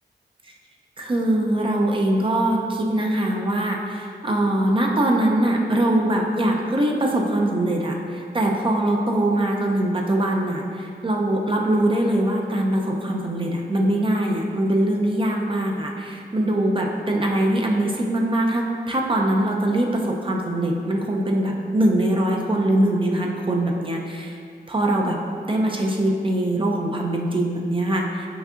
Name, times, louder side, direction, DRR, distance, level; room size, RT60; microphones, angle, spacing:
voice 1, 1.0-24.4 24.7-25.2 25.5-28.3, right 1 dB, 30° right, 0 dB, 0.5 m, -22 dB
5.8 x 2.7 x 2.4 m, 2.3 s
cardioid pair, 65°, 18 cm